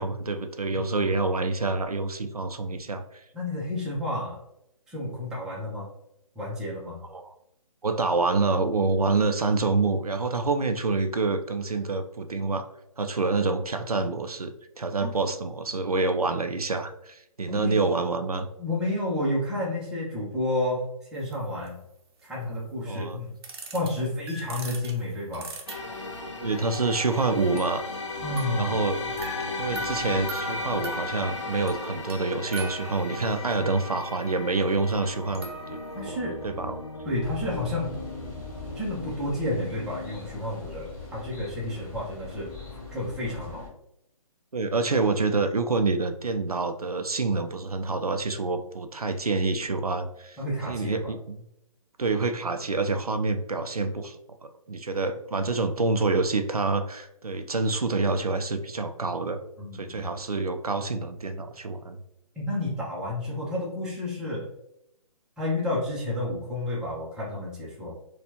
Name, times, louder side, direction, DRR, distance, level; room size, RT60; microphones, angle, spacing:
voice 1, 0.0-3.2 7.1-7.3 7.8-12.7 13.0-18.5 22.9-23.2 26.4-27.8 28.6-29.1 29.6-35.5 36.1-36.2 36.4-36.8 44.5-50.4 50.7-51.5 52.0-59.4 59.7-62.0, right 3 dB, 85° right, 7 dB, 0.4 m, -27 dB
voice 2, 0.7-1.1 3.3-4.4 4.9-5.9 6.3-7.0 15.0-15.1 17.5-17.8 18.6-21.8 22.2-23.3 23.7-25.5 28.2-28.8 35.9-36.4 37.0-37.9 38.7-42.5 42.9-43.7 50.4-51.1 59.6-60.0 62.4-64.5 65.4-68.0, left 1 dB, 5° right, -7 dB, 0.7 m, -31 dB
sound 1, 21.3-21.4 21.7-21.8 23.4-23.9 24.3-26.2 26.7-28.1 28.4-33.5 34.9-35.0 35.3-36.1, right 3 dB, 45° right, 0.7 m, -40 dB
sound 2, 25.7-39.2, left 3 dB, 55° left, 0.7 m, -36 dB
sound 3, 37.2-43.7, left 3 dB, 30° left, 1.4 m, -41 dB
4.3 x 2.4 x 2.8 m, 0.80 s
figure-of-eight pair, 135°, 19 cm